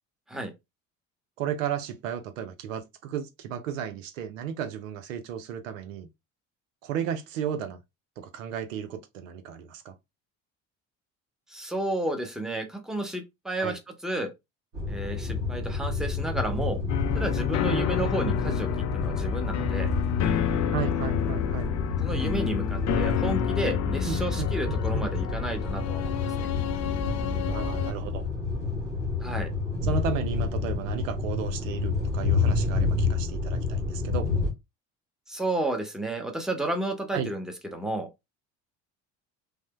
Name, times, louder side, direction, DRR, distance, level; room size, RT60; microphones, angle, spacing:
voice 1, 1.4-6.1 6.8-7.8 8.2-9.9 13.6-13.8 17.7-18.6 20.7-21.7 24.0-25.1 27.5-28.2 29.8-34.3 37.1-37.3, right 8 dB, 90° right, 0.6 m, -34 dB
voice 2, 11.5-14.3 14.9-16.8 17.1-18.7 18.9-19.9 22.0-26.5 29.2-29.5 35.3-38.1, right 1 dB, ahead, 0.8 m, -32 dB
sound 1, 14.7-34.5, left 4 dB, 50° right, 1.9 m, -29 dB
sound 2, 16.9-27.9, left 8 dB, 45° left, 0.5 m, -29 dB
3.1 x 2.0 x 3.0 m
hypercardioid pair, 70°, 37 cm